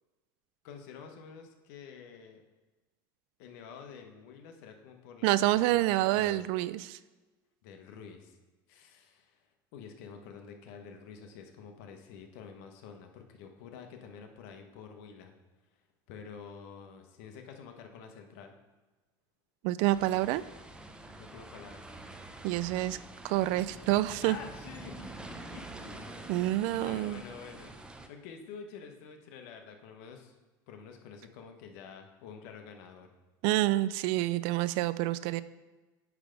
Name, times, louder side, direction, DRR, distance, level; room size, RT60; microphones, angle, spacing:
voice 1, 0.6-2.4 3.4-6.4 7.6-8.4 8.7-9.5 9.7-15.3 16.1-18.6 21.2-21.9 24.2-26.1 26.4-30.4 30.7-33.1, left 6 dB, 75° left, 5 dB, 1.1 m, -48 dB
voice 2, 5.2-7.0 19.6-20.4 22.4-23.0 23.2-24.4 26.3-27.2 33.4-35.4, right 16 dB, 70° right, 16 dB, 0.4 m, -27 dB
sound 1, 19.9-28.1, right 2 dB, 10° right, 0.6 m, -47 dB
9.7 x 3.4 x 5.1 m, 1.2 s
supercardioid pair, 115°, 10 cm